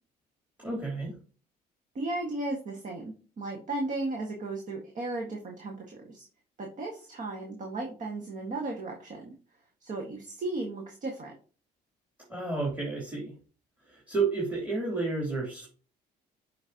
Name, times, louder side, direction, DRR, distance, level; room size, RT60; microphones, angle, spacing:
voice 1, 0.6-1.1 12.3-13.3 13.9-15.7, right 3 dB, 10° right, -4 dB, 3.2 m, -31 dB
voice 2, 2.0-6.3 6.6-9.3 9.8-11.3, right 2 dB, 45° right, 1 dB, 1.7 m, -35 dB
7.9 x 5.4 x 2.9 m, 0.37 s
cardioid pair, 110°, 17 cm